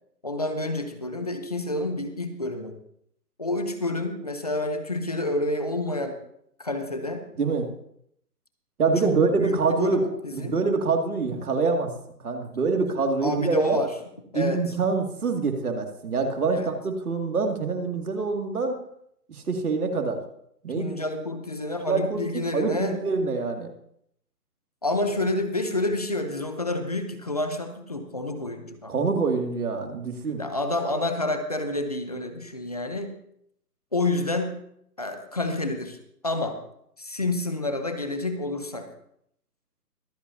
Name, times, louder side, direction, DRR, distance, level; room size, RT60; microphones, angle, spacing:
voice 1, 0.2-2.8 3.4-6.2 6.6-7.2 9.0-10.6 13.2-13.9 14.3-14.6 16.5-16.7 20.8-23.0 24.8-28.9 30.3-33.1 33.9-34.6 35.0-36.0 36.2-36.6 37.0-38.9, left 2 dB, 25° left, 7 dB, 0.8 m, -29 dB
voice 2, 7.4-7.7 8.8-11.9 12.2-13.8 14.3-18.8 19.3-20.2 20.6-20.9 21.9-22.2 22.5-23.7 28.9-30.4, right 4 dB, 65° right, 3 dB, 2.5 m, -25 dB
24.0 x 8.3 x 2.8 m, 0.73 s
hypercardioid pair, 175°, 48 cm